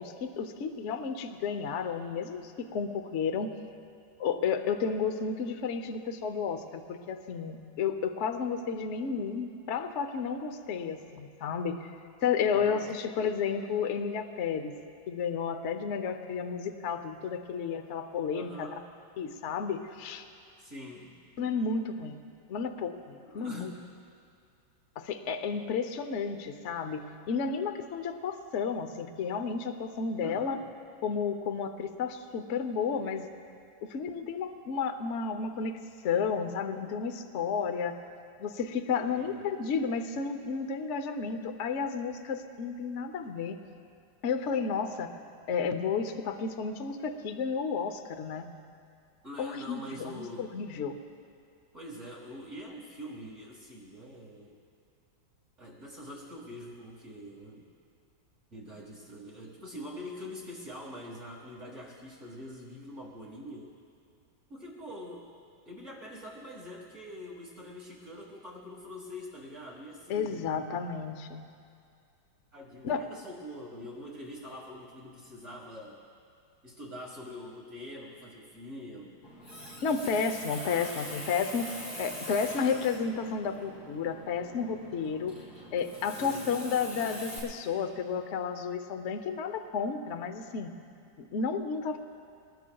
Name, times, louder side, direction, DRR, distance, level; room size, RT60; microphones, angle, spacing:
voice 1, 0.0-3.5 4.2-11.9 12.2-14.7 15.1-18.7 19.2-20.2 21.4-22.2 22.5-23.7 25.0-30.6 31.0-33.3 33.9-35.8 36.0-38.0 38.4-43.6 44.2-45.1 45.5-48.5 49.4-51.0 70.1-71.5 72.8-73.0 79.8-81.6 82.0-85.4 85.7-90.7 91.2-92.0, left 6 dB, 55° left, 7 dB, 0.8 m, -32 dB
voice 2, 12.5-12.9 18.3-18.9 20.6-21.2 23.2-23.7 30.2-30.7 39.1-39.5 49.2-50.5 51.7-54.6 55.6-57.6 58.5-63.7 64.5-65.3 65.7-70.7 72.5-76.0 76.6-79.3 81.7-82.1 86.1-86.5, equal, 40° right, -3 dB, 2.0 m, -44 dB
Water tap faucet, 79.2-87.4, equal, 80° left, 5.8 m, -43 dB
25.5 x 20.0 x 2.3 m, 2.4 s
omnidirectional pair, 2.0 m